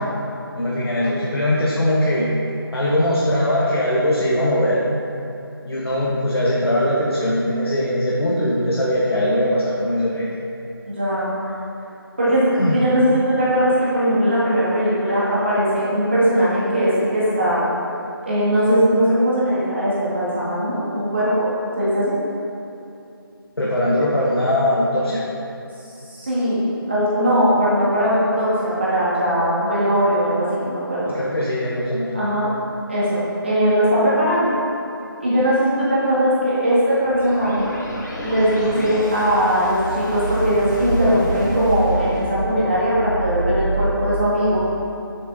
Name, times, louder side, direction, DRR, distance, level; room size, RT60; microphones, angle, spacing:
voice 1, 0.6-2.3 2.7-4.8 5.7-10.3 11.4-11.5 12.5-12.8 23.6-25.3 31.0-32.2, left 1 dB, 90° left, -6 dB, 1.7 m, -20 dB
voice 2, 10.9-11.4 12.2-17.6 18.3-21.5 21.8-22.2 26.1-31.1 32.1-32.5 32.9-34.5 35.2-37.7 38.2-44.6, equal, 30° right, -9 dB, 2.0 m, -19 dB
sound 1, 36.9-43.8, right 1 dB, 45° left, 1.9 m, -28 dB
8.4 x 7.3 x 4.1 m, 2.7 s
figure-of-eight pair, 175°, 13 cm